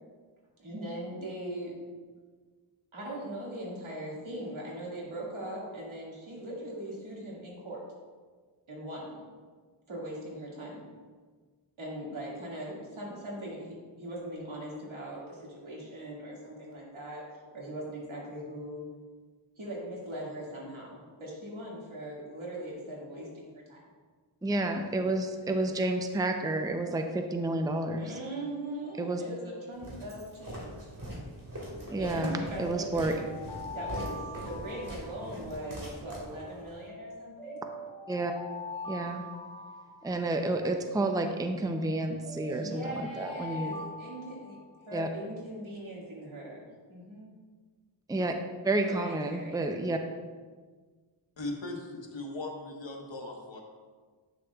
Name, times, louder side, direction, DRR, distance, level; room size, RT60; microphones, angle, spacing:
voice 1, 0.6-1.8 2.9-7.8 8.7-9.2 9.9-10.8 11.8-18.9 19.6-23.9 28.0-30.9 32.0-33.3 33.7-37.6 42.5-44.6 44.9-46.6 46.9-47.3 48.7-49.6, right 1 dB, 80° right, -5 dB, 2.1 m, -40 dB
voice 2, 24.4-28.1 29.0-29.2 31.9-33.1 38.1-38.3 38.9-39.2 40.0-43.7 44.9-45.1 48.1-48.3 48.6-50.0, right 2 dB, 10° right, 5 dB, 0.6 m, -30 dB
Walk footsteps, 29.8-36.7, right 1 dB, 40° right, 2.1 m, -42 dB
Alarm, 29.9-30.3 32.0-35.8 36.9-40.7 41.8-45.0, left 2 dB, 10° left, 1.4 m, -43 dB
voice 3, 51.4-53.6, left 2 dB, 65° left, 1 dB, 1.3 m, -38 dB
9.3 x 6.3 x 2.3 m, 1.5 s
cardioid pair, 50°, 48 cm